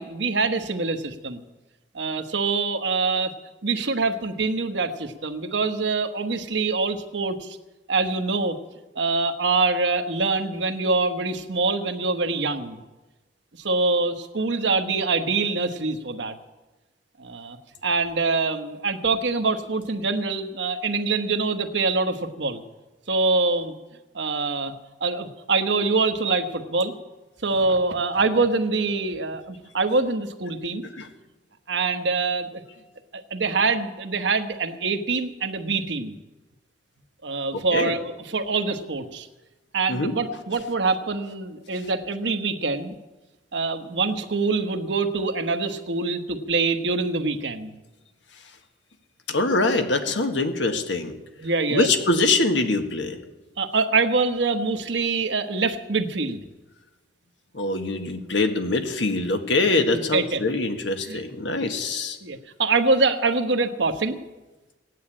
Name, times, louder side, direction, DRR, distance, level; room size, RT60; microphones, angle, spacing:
voice 1, 0.0-1.4 1.9-3.3 3.6-7.6 7.9-8.6 8.9-12.8 13.6-16.4 17.2-17.6 17.8-22.6 23.1-23.7 24.1-24.7 25.0-27.0 27.4-30.9 31.7-32.6 33.1-36.2 37.2-39.3 39.7-42.9 43.5-47.8 51.4-51.9 53.6-56.4 59.9-60.4 61.0-61.2 62.2-64.2, right 3 dB, 70° right, 8 dB, 1.2 m, -24 dB
voice 2, 37.5-37.9 39.9-40.1 49.3-51.1 51.7-53.2 57.5-62.2, left 2 dB, 80° left, 6 dB, 1.7 m, -24 dB
17.0 x 9.4 x 8.7 m, 1.1 s
head